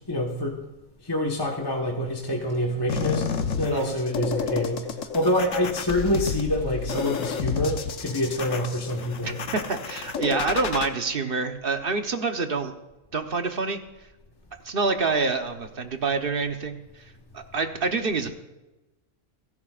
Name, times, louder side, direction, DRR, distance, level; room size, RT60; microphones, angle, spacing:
voice 1, 0.1-0.6 1.0-3.3 3.6-4.9 5.1-9.4, left 1 dB, 20° left, -1 dB, 1.3 m, -26 dB
sound 1, 2.9-10.9, left 6 dB, 70° left, 1.3 m, -31 dB
voice 2, 9.2-12.7 13.1-13.8 14.6-18.3, right 4 dB, 45° right, 6 dB, 1.1 m, -27 dB
29.5 x 11.0 x 2.5 m, 1.0 s
omnidirectional pair, 1.4 m